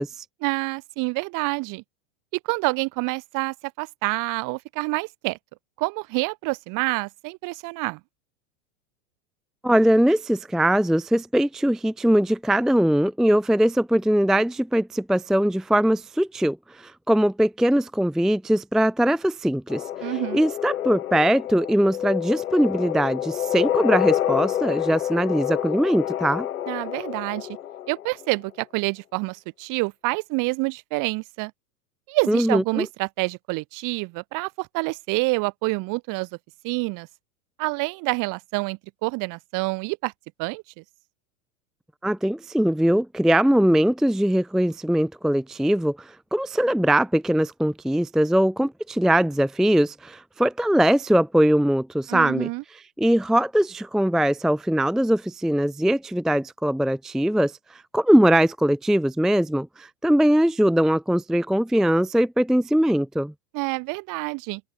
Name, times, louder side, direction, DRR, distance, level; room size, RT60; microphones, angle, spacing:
voice 1, 0.4-1.8 2.4-5.4 5.8-8.0 20.0-20.4 26.7-27.6 27.9-31.5 32.1-36.3 36.6-37.1 37.6-40.1 40.4-40.8 52.1-52.6 63.5-64.6, right 27 dB, 45° right, 4.2 m, -27 dB
voice 2, 9.6-26.5 32.3-32.9 42.0-52.5 53.0-63.3, right 1 dB, ahead, 0.5 m, -21 dB
sound 1, 19.7-28.3, left 11 dB, 80° left, 5.9 m, -28 dB
open air
hypercardioid pair, 125°, 42 cm